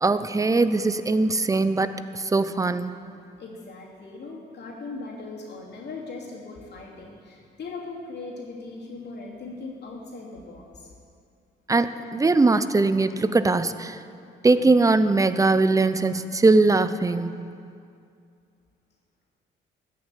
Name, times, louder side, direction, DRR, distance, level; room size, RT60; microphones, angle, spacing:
voice 1, 0.0-2.9 11.7-14.0 14.4-17.3, right 3 dB, 15° right, 12 dB, 0.5 m, -21 dB
voice 2, 3.4-10.9, left 3 dB, 60° left, -3 dB, 2.9 m, -39 dB
13.5 x 6.5 x 8.4 m, 2.3 s
cardioid pair, 90°, 20 cm